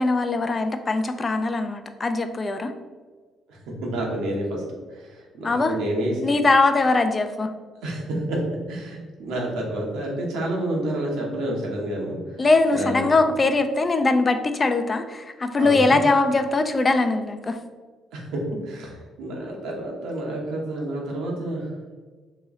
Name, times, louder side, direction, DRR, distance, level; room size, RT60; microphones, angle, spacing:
voice 1, 0.0-2.7 5.4-5.8 6.2-7.5 12.4-17.6, left 3 dB, 30° left, 8 dB, 0.3 m, -21 dB
voice 2, 3.5-4.6 4.9-6.1 7.8-8.4 8.7-12.4 12.7-13.1 15.6-16.0 18.1-21.7, right 1 dB, 85° right, -2 dB, 1.0 m, -29 dB
3.0 x 3.0 x 3.6 m, 1.4 s
cardioid pair, 100°, 0 cm